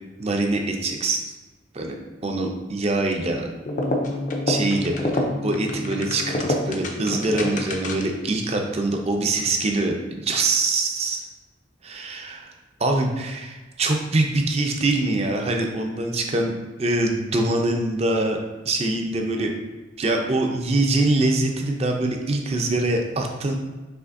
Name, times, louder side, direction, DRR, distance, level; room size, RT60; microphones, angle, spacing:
voice 1, 0.2-1.4 1.7-2.0 2.2-3.5 4.5-11.2 11.8-12.5 12.8-16.5 16.8-18.4 18.7-19.5 20.0-23.5, right 2 dB, 30° right, 3 dB, 0.5 m, -24 dB
sound 1, 3.6-8.2, left 1 dB, 40° left, 0.5 m, -27 dB
5.7 x 3.3 x 2.5 m, 1.2 s
head